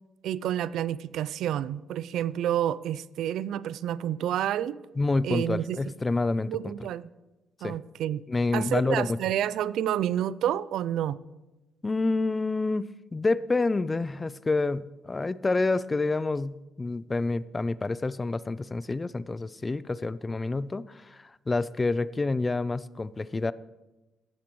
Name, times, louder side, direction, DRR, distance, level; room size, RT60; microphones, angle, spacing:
voice 1, 0.2-4.8 5.2-5.8 6.5-7.1 7.6-8.2 8.5-11.2, right 11 dB, 80° right, 18 dB, 0.4 m, -29 dB
voice 2, 5.0-6.5 7.6-7.8 8.3-9.2 11.8-23.5, left 3 dB, 25° left, 18 dB, 0.4 m, -28 dB
15.5 x 11.0 x 3.1 m, 1.1 s
cardioid pair, 90°, 0 cm